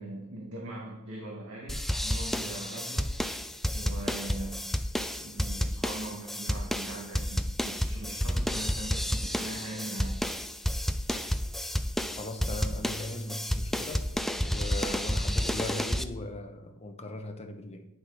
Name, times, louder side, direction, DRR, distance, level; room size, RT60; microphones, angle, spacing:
voice 1, 0.0-3.1 3.7-4.6 5.2-10.4, right 1 dB, 70° right, -2 dB, 1.8 m, -41 dB
sound 1, 1.7-16.0, equal, ahead, 0.4 m, -31 dB
voice 2, 12.1-14.1 14.4-17.9, left 1 dB, 30° left, 5 dB, 1.0 m, -38 dB
9.6 x 7.4 x 4.9 m, 0.90 s
head